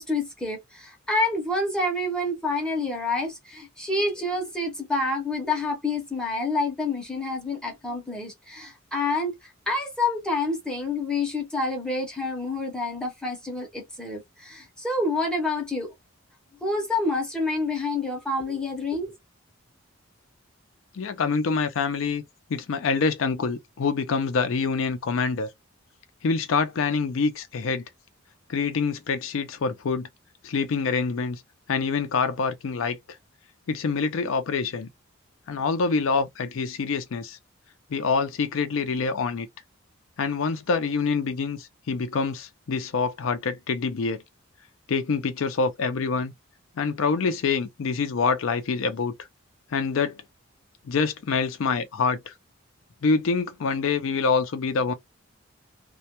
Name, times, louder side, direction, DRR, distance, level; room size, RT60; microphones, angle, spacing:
voice 1, 0.0-15.9 16.6-19.1, left 2 dB, 5° left, 0.6 m, -28 dB
voice 2, 20.9-22.2 22.5-25.5 26.2-27.8 28.5-30.1 30.4-31.4 31.7-33.0 33.7-34.9 35.5-37.4 37.9-39.5 40.2-44.2 44.9-46.3 46.8-49.1 49.7-50.2 50.8-52.3 53.0-54.9, left 4 dB, 65° left, 0.4 m, -26 dB
2.2 x 2.1 x 2.8 m
head